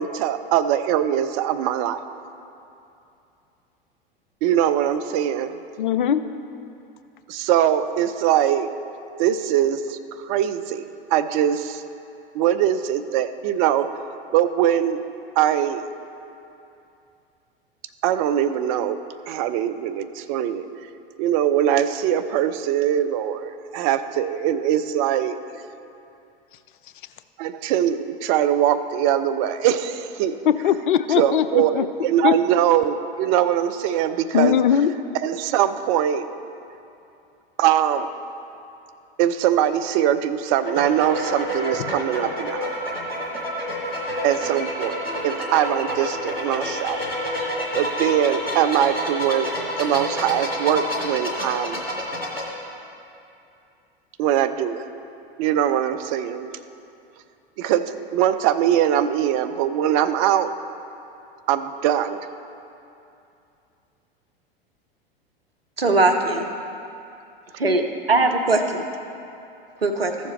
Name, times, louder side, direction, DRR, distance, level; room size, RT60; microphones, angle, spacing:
voice 1, 0.0-2.0 4.4-5.6 7.3-8.7 9.2-10.8 11.1-11.8 12.3-14.0 14.3-15.0 15.4-15.9 18.0-19.0 19.3-20.7 21.2-25.4 27.4-30.4 31.2-34.6 35.2-36.3 37.6-38.1 39.2-42.7 44.2-47.0 47.7-49.5 49.8-51.8 54.2-54.9 55.4-56.5 57.6-60.5 61.5-62.2, right 10 dB, 40° right, 10 dB, 0.5 m, -22 dB
voice 2, 5.8-6.2 30.5-31.8 32.2-32.4 34.3-34.9 41.9-42.0, left 9 dB, 60° left, 12 dB, 0.5 m, -20 dB
sound 1, 40.5-52.4, left 1 dB, 85° left, 1.6 m, -29 dB
voice 3, 65.8-66.5 67.6-67.8 68.1-68.8 69.8-70.1, right 3 dB, 85° right, 5 dB, 0.8 m, -20 dB
14.0 x 7.1 x 3.2 m, 2.7 s
figure-of-eight pair, 85°, 29 cm